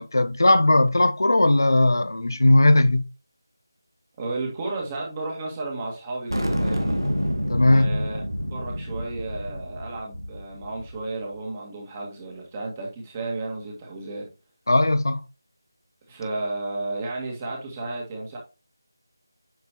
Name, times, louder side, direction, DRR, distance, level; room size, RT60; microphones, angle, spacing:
voice 1, 0.0-3.0 7.5-8.0 14.7-15.2, left 2 dB, 60° left, 0.7 m, -18 dB
voice 2, 4.2-7.0 7.6-8.2 8.5-14.3 16.1-18.4, right 2 dB, 20° right, 1.8 m, -33 dB
sound 1, 6.3-11.0, equal, 85° right, 2.1 m, -28 dB
9.4 x 6.8 x 2.9 m
figure-of-eight pair, 160°, 2 cm